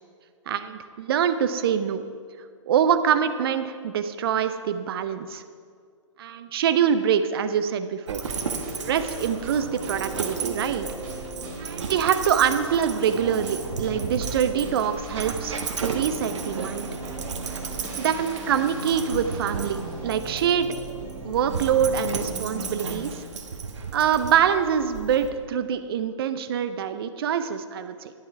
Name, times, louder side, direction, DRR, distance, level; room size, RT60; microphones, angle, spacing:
voice 1, 0.5-2.0 2.6-5.4 6.2-8.2 8.8-10.9 11.6-16.9 18.0-20.7 21.2-23.2 23.9-28.1, right 8 dB, 45° right, 11 dB, 0.7 m, -25 dB
Dog, 8.1-25.3, right 5 dB, 60° right, 1.2 m, -34 dB
sound 1, 8.2-23.4, right 2 dB, 30° right, 2.6 m, -38 dB
11.5 x 10.0 x 4.7 m, 2.1 s
figure-of-eight pair, 125°, 17 cm